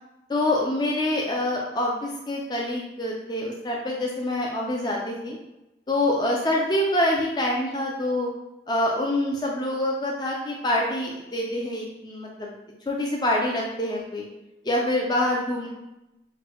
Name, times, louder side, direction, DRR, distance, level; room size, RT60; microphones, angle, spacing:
voice 1, 0.3-5.4 5.9-8.3 8.7-12.5 12.9-14.3 14.6-15.7, left 1 dB, 25° left, -2 dB, 0.5 m, -26 dB
5.8 x 2.2 x 3.0 m, 0.95 s
head